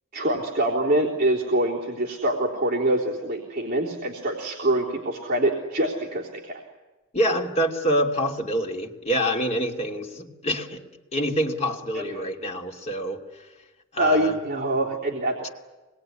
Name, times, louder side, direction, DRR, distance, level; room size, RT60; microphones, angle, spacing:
voice 1, 0.1-6.6 11.9-12.0 14.0-15.3, right 1 dB, 45° right, -4 dB, 3.6 m, -25 dB
voice 2, 7.1-10.8 11.1-13.5 13.9-14.4, equal, 30° left, 1 dB, 2.6 m, -26 dB
25.5 x 21.0 x 9.8 m, 1.2 s
head